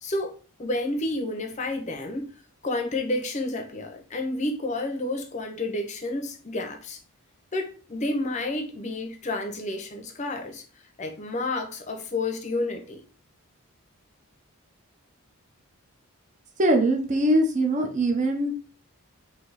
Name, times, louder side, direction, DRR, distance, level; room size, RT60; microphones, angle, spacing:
voice 1, 0.0-2.3 2.6-7.0 7.5-10.6 11.0-13.0, left 2 dB, 30° left, 0.6 m, -30 dB
voice 2, 16.6-18.5, right 1 dB, 35° right, 0.6 m, -22 dB
3.3 x 2.7 x 3.9 m
head